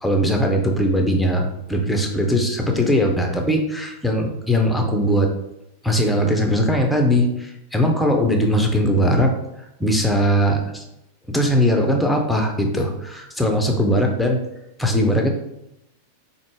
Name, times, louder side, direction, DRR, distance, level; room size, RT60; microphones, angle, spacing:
voice 1, 0.0-5.3 5.8-9.3 9.8-10.8 11.3-14.4 14.8-15.3, equal, 5° left, 2 dB, 0.7 m, -20 dB
4.7 x 2.0 x 3.6 m, 0.84 s
figure-of-eight pair, 90°, 0 cm